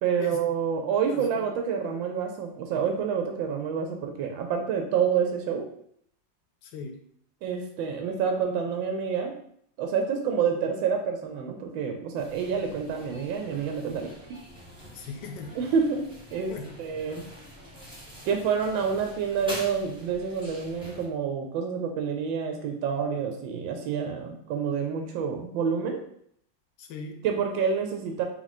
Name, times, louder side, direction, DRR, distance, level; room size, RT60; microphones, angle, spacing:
voice 1, 0.0-5.7 7.4-9.3 9.8-14.1 15.6-16.0 16.3-17.3 18.2-26.0 27.2-28.2, right 6 dB, 80° right, 3 dB, 1.4 m, -28 dB
voice 2, 1.1-1.5 6.6-7.0 14.9-15.6 16.5-16.8 26.8-27.2, left 4 dB, 75° left, 5 dB, 1.2 m, -39 dB
sound 1, 12.2-21.1, equal, 5° right, 0.9 m, -45 dB
3.8 x 3.1 x 4.0 m, 0.66 s
omnidirectional pair, 2.1 m